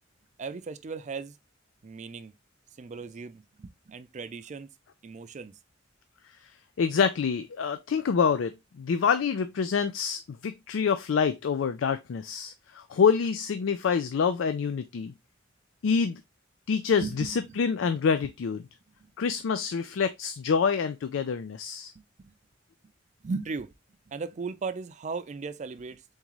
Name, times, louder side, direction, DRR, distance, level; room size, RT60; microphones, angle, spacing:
voice 1, 0.4-1.4 1.8-2.3 2.8-4.7 5.0-5.6 17.0-17.6 19.0-19.1 21.9-22.3 23.2-23.7 24.1-26.0, right 4 dB, 40° right, 0.4 m, -37 dB
voice 2, 6.8-15.1 15.8-16.2 16.7-18.6 19.2-21.9, left 6 dB, 90° left, 0.4 m, -26 dB
4.0 x 3.7 x 3.0 m
head